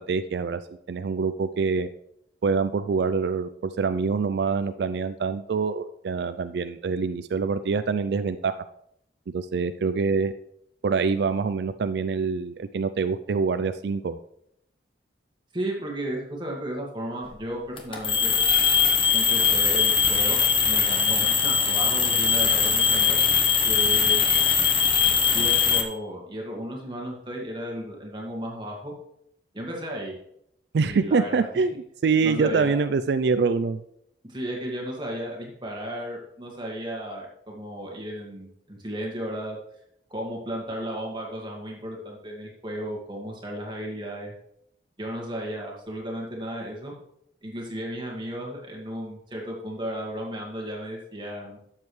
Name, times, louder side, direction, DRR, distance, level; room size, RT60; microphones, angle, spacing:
voice 1, 0.1-0.6 0.9-1.9 2.4-8.6 9.3-10.3 10.8-14.2 30.7-31.7 32.0-33.8, right 5 dB, 70° right, 11 dB, 0.4 m, -25 dB
voice 2, 15.5-18.3 19.1-23.2 23.7-24.3 25.3-28.9 29.5-30.1 30.8-31.6 32.2-32.8 34.2-39.6 40.1-44.3 45.0-46.9 47.4-51.6, right 1 dB, 25° right, -1 dB, 1.9 m, -34 dB
sound 1, 17.8-25.8, left 7 dB, 30° left, 1.2 m, -21 dB
12.5 x 7.4 x 3.2 m, 0.75 s
head